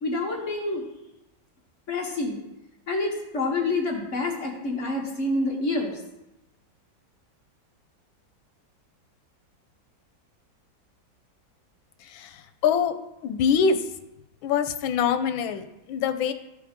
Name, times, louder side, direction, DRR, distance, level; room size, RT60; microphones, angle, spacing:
voice 1, 0.0-0.8 1.9-2.4 2.9-6.0, left 2 dB, 45° left, -1 dB, 1.5 m, -27 dB
voice 2, 12.0-12.9 13.2-13.8 14.4-16.3, left 6 dB, 90° left, 9 dB, 1.4 m, -24 dB
14.0 x 4.9 x 3.6 m, 0.92 s
omnidirectional pair, 2.1 m